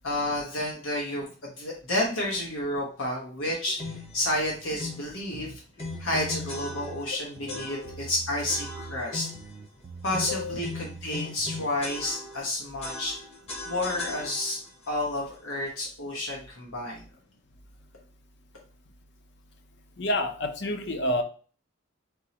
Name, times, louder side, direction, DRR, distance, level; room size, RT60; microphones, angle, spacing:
voice 1, 0.0-5.6 6.0-9.3 10.0-13.1 13.7-14.6 14.9-17.0, left 1 dB, 90° left, -2 dB, 1.1 m, -30 dB
sound 1, 3.8-4.2 4.8-5.1 5.8-7.2 7.5-8.1 8.5-9.5 10.1-12.5 12.8-14.7, left 3 dB, 30° left, 0.9 m, -39 dB
sound 2, 3.9-4.9 5.3-7.0 7.4-9.1 9.3-11.7, right 4 dB, 45° right, 0.3 m, -44 dB
voice 2, 7.5-8.0 10.2-10.6 20.0-21.2, left 1 dB, 55° left, 6 dB, 0.6 m, -29 dB
4.1 x 3.7 x 2.8 m, 0.39 s
head